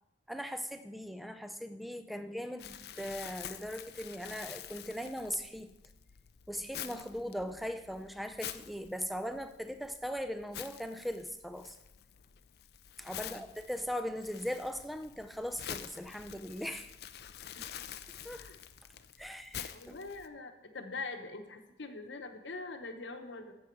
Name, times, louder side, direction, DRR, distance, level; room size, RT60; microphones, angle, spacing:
voice 1, 0.3-5.7 6.5-11.8 13.0-16.9 18.2-18.5 19.2-20.0, equal, ahead, 9 dB, 0.5 m, -39 dB
Crumpling crinkling, 2.6-20.3, left 9 dB, 60° left, 0.5 m, -48 dB
voice 2, 19.7-23.5, left 3 dB, 85° left, 6 dB, 1.1 m, -44 dB
11.5 x 7.7 x 4.7 m, 0.96 s
head